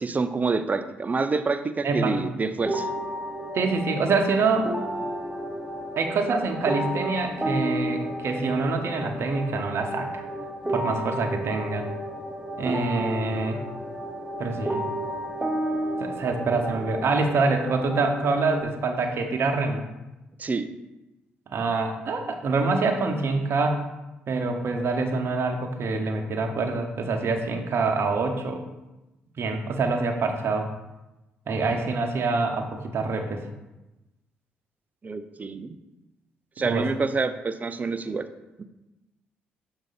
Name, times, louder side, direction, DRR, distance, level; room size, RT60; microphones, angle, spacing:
voice 1, 0.0-2.9 20.4-20.7 35.0-35.8 36.6-38.3 38.6-38.7, right 4 dB, 35° right, 11 dB, 0.5 m, -27 dB
voice 2, 1.8-2.2 3.5-4.7 6.0-10.3 10.7-11.9 12.6-13.6 14.4-14.8 16.0-19.9 21.5-23.9 24.3-28.6 29.4-30.7 31.5-33.5 36.6-36.9, right 3 dB, 55° right, 5 dB, 0.9 m, -25 dB
sound 1, 2.6-18.6, right 1 dB, 15° right, 1.1 m, -32 dB
6.5 x 4.0 x 4.0 m, 1.0 s
hypercardioid pair, 50°, 5 cm